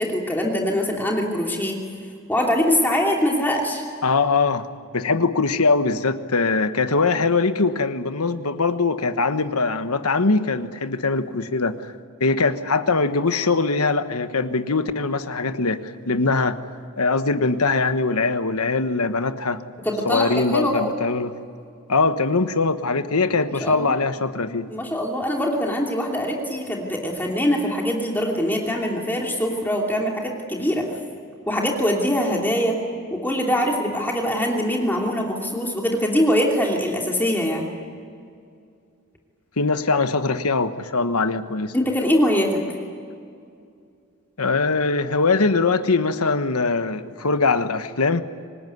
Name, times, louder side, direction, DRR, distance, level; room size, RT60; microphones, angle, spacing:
voice 1, 0.0-1.8 2.3-3.8 19.8-20.9 23.6-24.0 24.7-30.9 31.5-32.8 33.1-37.7 41.7-42.6, equal, 10° left, -1 dB, 2.9 m, -23 dB
voice 2, 4.0-4.7 4.9-11.9 12.2-16.6 17.0-19.6 20.0-21.4 21.9-24.7 39.6-41.7 44.4-48.2, left 3 dB, 85° left, 10 dB, 1.3 m, -22 dB
25.0 x 20.0 x 9.5 m, 2.3 s
head